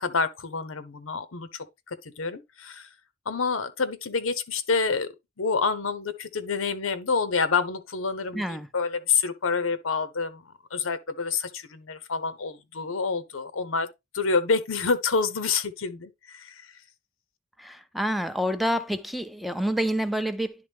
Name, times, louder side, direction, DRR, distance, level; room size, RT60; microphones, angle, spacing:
voice 1, 0.0-2.9 3.3-13.9 14.1-16.7, left 4 dB, 90° left, 0.8 m, -28 dB
voice 2, 8.3-8.7 17.6-20.5, equal, ahead, 0.4 m, -28 dB
10.5 x 3.6 x 3.4 m
head